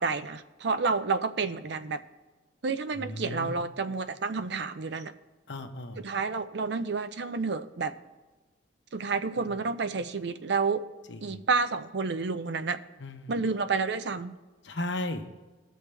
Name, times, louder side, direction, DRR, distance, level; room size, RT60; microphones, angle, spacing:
voice 1, 0.0-2.0 2.6-5.1 6.0-7.9 8.9-10.8 11.2-12.8 13.3-14.3, right 4 dB, 65° right, 11 dB, 0.6 m, -30 dB
voice 2, 2.9-3.6 5.5-6.0 9.3-9.6 11.1-11.5 13.0-13.4 14.6-15.3, left 1 dB, 70° left, 6 dB, 1.0 m, -36 dB
19.0 x 6.5 x 3.3 m, 1.2 s
head